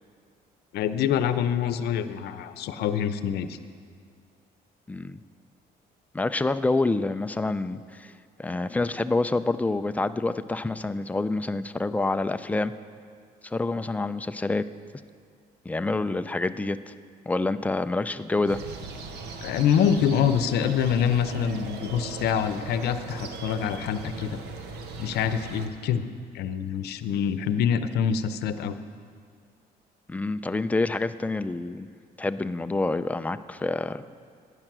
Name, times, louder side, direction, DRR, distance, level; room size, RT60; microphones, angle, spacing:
voice 1, 0.7-3.6 19.4-24.4 25.0-26.0 26.3-28.7, left 8 dB, 75° left, 11 dB, 0.7 m, -25 dB
voice 2, 4.9-5.2 6.1-8.1 8.4-12.7 13.4-14.6 15.7-16.9 17.3-18.6 30.1-31.9 32.2-34.0, left 2 dB, 10° left, 11 dB, 0.4 m, -27 dB
sound 1, 18.5-25.7, right 4 dB, 75° right, 1.3 m, -39 dB
14.0 x 9.9 x 6.1 m, 2.1 s
cardioid pair, 110°, 17 cm